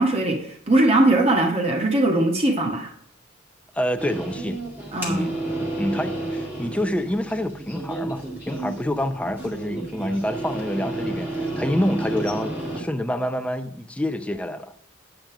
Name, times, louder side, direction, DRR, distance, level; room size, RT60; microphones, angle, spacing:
voice 1, 0.0-2.9 4.9-5.3, right 2 dB, 30° right, 1.4 m, -20 dB
voice 2, 3.7-4.6 5.1-5.4 5.8-14.7, left 1 dB, 5° left, 0.5 m, -27 dB
sound 1, 4.0-12.8, right 2 dB, 10° right, 2.1 m, -31 dB
9.1 x 5.2 x 5.9 m
head